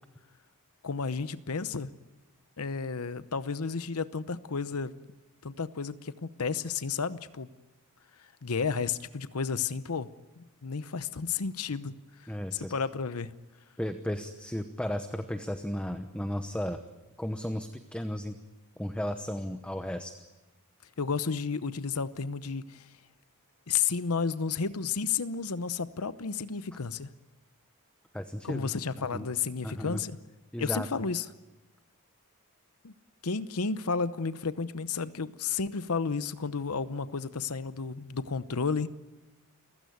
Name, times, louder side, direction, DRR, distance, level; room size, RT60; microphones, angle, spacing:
voice 1, 0.8-1.9 2.6-4.9 5.4-7.5 8.4-10.1 10.4-11.9 12.5-13.3 21.0-22.9 23.7-27.1 28.4-30.2 30.6-31.3 32.8-32.9 33.2-38.9, left 5 dB, 80° left, 14 dB, 0.9 m, -32 dB
voice 2, 12.3-12.7 13.8-16.8 17.2-18.4 18.8-20.1 28.1-29.3 29.6-30.0 30.5-30.9, equal, 5° left, 8 dB, 0.9 m, -34 dB
29.0 x 16.0 x 9.5 m, 1.1 s
head